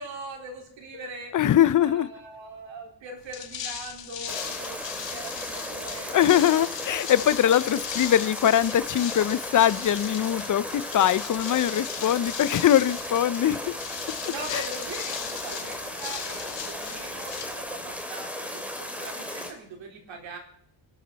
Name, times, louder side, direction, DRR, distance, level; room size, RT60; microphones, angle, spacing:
voice 1, 0.0-1.3 1.8-6.6 7.4-7.5 14.2-20.4, right 3 dB, 80° right, 4.3 m, -41 dB
voice 2, 1.3-2.1 6.1-13.6 14.5-14.6, left 11 dB, 45° left, 0.6 m, -22 dB
sound 1, 3.2-18.0, left 8 dB, 70° left, 2.3 m, -38 dB
sound 2, 4.3-19.5, left 1 dB, 5° right, 2.6 m, -36 dB
28.5 x 12.5 x 4.1 m
cardioid pair, 130°, 45 cm